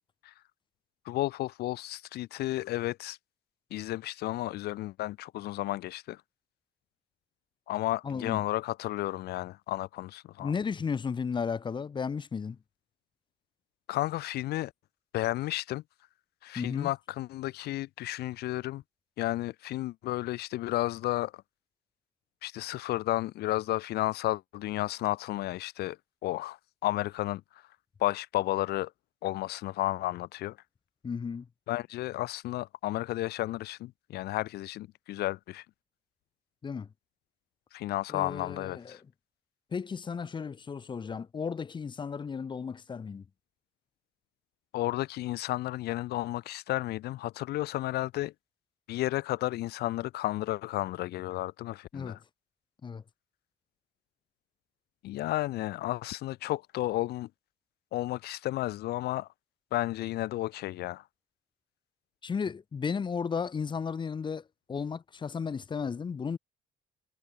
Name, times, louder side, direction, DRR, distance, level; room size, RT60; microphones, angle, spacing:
voice 1, 1.0-3.2 3.7-6.2 7.7-10.5 13.9-14.7 15.1-15.8 16.4-18.8 19.2-21.4 22.4-27.6 28.0-28.9 29.2-30.6 31.7-35.6 37.7-39.0 44.7-48.3 48.9-52.2 55.0-57.3 57.9-59.3 59.7-61.0, left 16 dB, 75° left, 1.0 m, -32 dB
voice 2, 8.0-8.4 10.4-12.6 16.6-16.9 31.0-31.5 36.6-36.9 38.1-39.0 39.7-43.3 51.9-52.2 52.8-53.0 62.2-66.4, left 6 dB, 30° left, 0.9 m, -34 dB
cardioid pair, 110°, 17 cm